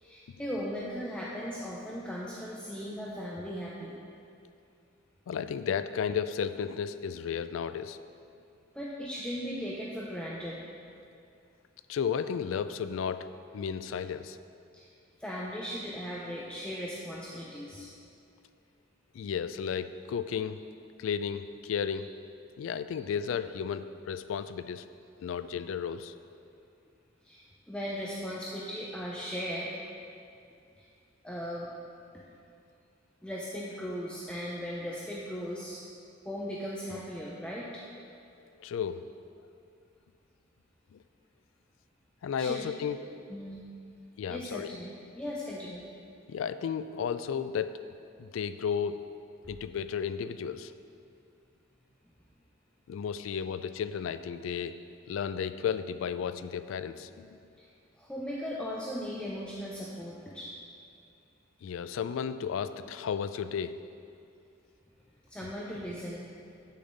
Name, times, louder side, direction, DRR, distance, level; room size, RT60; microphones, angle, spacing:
voice 1, 0.0-3.9 8.7-10.6 14.7-14.8 15.2-17.9 21.3-21.4 21.9-22.1 22.9-23.0 27.2-29.7 30.8-30.9 31.2-31.7 33.2-35.8 36.2-37.8 42.4-42.7 43.3-43.7 44.2-45.9 48.6-48.7 54.7-54.8 57.6-57.7 58.0-60.5 63.1-63.2 65.3-66.3, equal, 5° left, -5 dB, 0.6 m, -38 dB
voice 2, 5.3-8.0 11.9-13.3 13.5-14.4 19.1-20.6 21.0-22.1 22.6-24.8 25.2-26.1 38.6-39.0 40.9-41.0 42.2-43.0 44.2-44.7 46.3-47.8 48.2-49.0 49.5-50.7 52.9-54.8 55.1-57.4 61.6-63.7, left 7 dB, 80° left, 13 dB, 0.3 m, -33 dB
8.0 x 6.6 x 3.9 m, 2.4 s
head